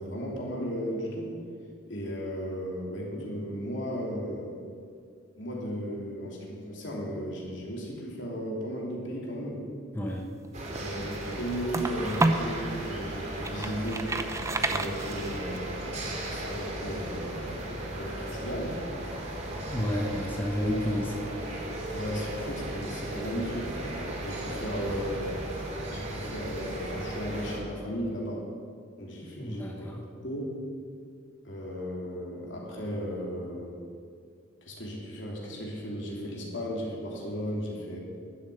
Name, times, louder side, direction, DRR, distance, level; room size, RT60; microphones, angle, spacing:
voice 1, 0.0-1.4 1.9-4.5 5.4-9.7 10.7-14.1 14.6-18.8 21.9-23.7 24.2-25.4 25.9-28.5 29.0-30.5 31.4-33.8 34.6-38.0, equal, 65° left, -2 dB, 3.3 m, -35 dB
voice 2, 9.9-10.3 19.7-21.3 29.2-30.1, equal, 10° left, -1 dB, 0.9 m, -31 dB
sound 1, 10.4-12.6 13.1-15.6, right 2 dB, 15° right, 0.6 m, -30 dB
sound 2, 10.5-27.6, right 1 dB, 35° right, 2.3 m, -36 dB
11.5 x 7.9 x 10.0 m, 2.2 s
head